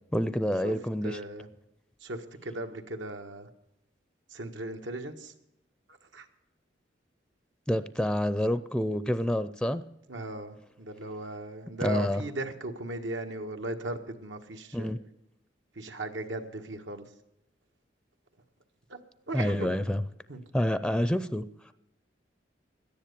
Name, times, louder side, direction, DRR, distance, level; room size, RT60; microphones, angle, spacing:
voice 1, 0.1-1.2 7.7-9.8 11.8-12.2 14.7-15.0 19.3-20.0 20.5-21.4, equal, 5° left, 13 dB, 0.4 m, -28 dB
voice 2, 1.0-1.5 2.0-3.5 4.3-5.3 6.1-6.2 10.1-14.9 15.7-17.0 18.9-19.0 19.3-19.7 20.3-20.4, right 2 dB, 90° right, 5 dB, 1.5 m, -37 dB
13.5 x 10.5 x 6.8 m, 0.87 s
head